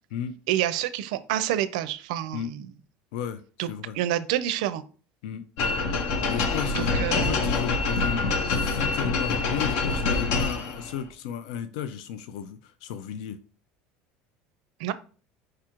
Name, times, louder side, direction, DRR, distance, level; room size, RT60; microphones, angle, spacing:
voice 1, 0.5-2.7 3.6-3.7 3.9-4.8 6.8-7.4 14.8-14.9, right 12 dB, 80° right, 14 dB, 0.4 m, -28 dB
voice 2, 3.1-4.0 5.2-5.4 6.3-13.4, left 8 dB, 80° left, 11 dB, 0.4 m, -34 dB
sound 1, 5.6-11.0, left 3 dB, 65° left, 0.7 m, -26 dB
4.7 x 2.4 x 4.4 m, 0.39 s
cardioid pair, 175°, 4 cm